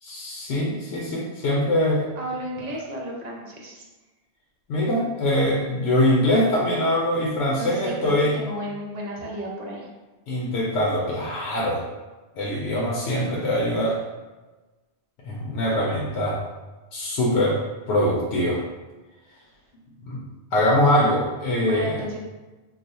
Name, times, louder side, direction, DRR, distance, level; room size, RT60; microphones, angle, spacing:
voice 1, 0.0-2.1 4.7-8.4 10.3-11.8 12.4-14.0 15.2-16.4 16.9-17.6 17.9-18.6 20.1-20.2 20.5-22.0, left 1 dB, 85° left, -4 dB, 0.9 m, -23 dB
voice 2, 2.2-3.8 7.4-9.9 21.6-22.2, equal, 45° right, -2 dB, 0.6 m, -33 dB
2.4 x 2.3 x 4.0 m, 1.2 s
omnidirectional pair, 1.1 m